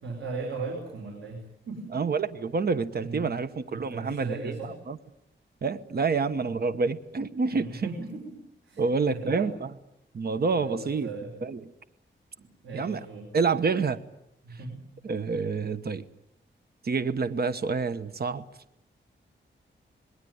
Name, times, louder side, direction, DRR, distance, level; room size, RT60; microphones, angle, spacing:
voice 1, 0.0-2.0 3.0-3.3 3.7-4.8 7.5-9.6 10.5-11.4 12.4-13.3 14.4-14.9, right 3 dB, 90° right, 2 dB, 5.1 m, -38 dB
voice 2, 1.9-4.5 4.9-5.0 5.6-7.8 8.8-9.7 10.1-11.1 11.4-11.6 12.7-13.0 13.3-14.0 15.0-16.0 16.8-18.4, right 4 dB, 55° right, 12 dB, 1.1 m, -28 dB
27.0 x 21.0 x 9.5 m, 0.79 s
wide cardioid pair, 120°, 20 cm